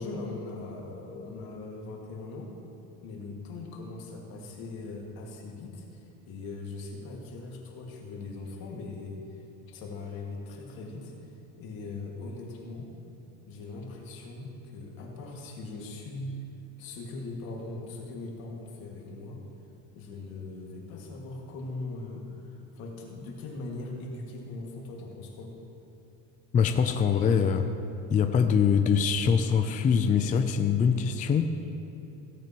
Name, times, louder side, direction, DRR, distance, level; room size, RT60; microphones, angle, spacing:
voice 1, 0.0-2.5 3.0-11.1 11.6-12.9 13.5-16.4 16.8-19.4 20.0-25.5, left 3 dB, 70° left, -1 dB, 2.1 m, -40 dB
voice 2, 26.5-27.7 28.1-31.5, left 6 dB, 20° left, 7 dB, 0.4 m, -23 dB
16.0 x 8.9 x 3.0 m, 2.8 s
cardioid pair, 130°, 37 cm